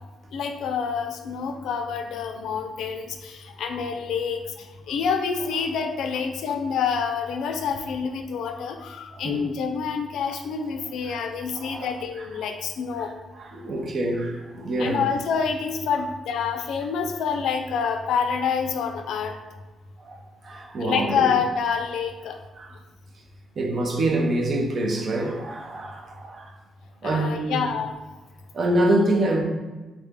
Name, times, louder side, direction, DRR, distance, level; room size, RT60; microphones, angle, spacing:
voice 1, 0.3-13.1 14.8-19.3 20.8-22.4 27.0-27.9, left 6 dB, 80° left, 0.5 m, -27 dB
voice 2, 9.1-9.5 11.1-11.2 11.5-12.3 13.0-13.1 13.4-15.1 20.0-21.3 22.6-22.7 23.6-26.5 27.0-27.6 28.5-29.4, right 1 dB, 40° right, 0.6 m, -26 dB
3.7 x 3.3 x 3.5 m
cardioid pair, 135°, 0 cm